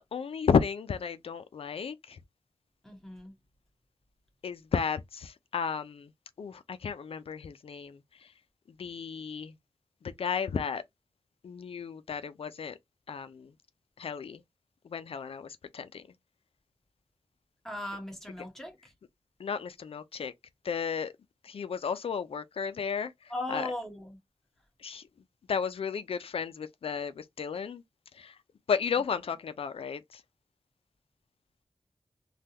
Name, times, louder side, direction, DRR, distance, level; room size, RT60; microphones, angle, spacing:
voice 1, 0.0-2.2 4.4-6.1 6.4-8.0 8.8-9.5 10.2-10.8 11.4-12.8 13.1-13.5 14.0-14.4 14.9-16.0 19.4-20.3 20.6-21.1 21.4-23.1 23.5-23.7 24.8-25.0 25.5-27.8 28.2-28.3 28.7-30.2, left 6 dB, 80° left, 0.4 m, -33 dB
voice 2, 2.8-3.3 17.6-18.9 23.3-24.2 28.9-29.0, left 1 dB, 5° left, 1.3 m, -38 dB
3.3 x 2.3 x 2.8 m
wide cardioid pair, 60°, 10 cm